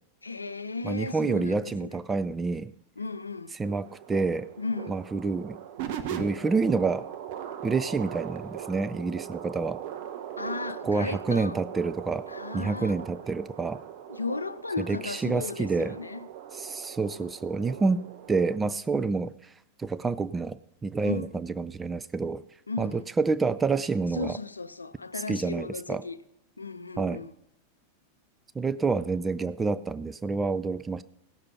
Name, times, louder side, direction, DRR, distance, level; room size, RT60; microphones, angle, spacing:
voice 1, 0.2-2.0 3.0-3.6 4.6-5.0 10.4-11.6 12.3-13.0 14.1-16.3 21.0-21.3 22.7-23.1 24.1-26.2 26.6-27.3, left 3 dB, 80° left, 0.5 m, -35 dB
voice 2, 0.8-2.7 3.6-4.5 4.9-5.6 6.1-7.1 7.6-9.8 10.8-12.3 12.5-13.8 14.8-15.9 16.5-18.0 18.3-19.5 19.8-22.4 22.8-24.4 25.3-26.0 27.0-27.2 28.6-31.0, right 4 dB, 15° right, 0.4 m, -28 dB
sound 1, 3.6-18.6, right 10 dB, 50° right, 1.2 m, -40 dB
16.0 x 6.7 x 5.8 m
figure-of-eight pair, 90°, 0 cm